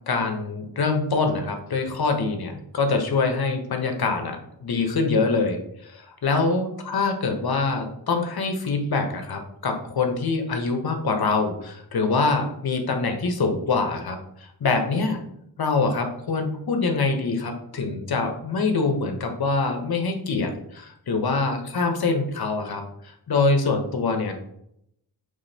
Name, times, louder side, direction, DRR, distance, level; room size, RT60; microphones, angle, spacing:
voice 1, 0.0-14.2 14.6-15.2 15.6-22.8 23.3-24.3, left 4 dB, 55° left, 5 dB, 0.9 m, -24 dB
5.1 x 3.4 x 2.8 m, 0.75 s
cardioid pair, 70°, 44 cm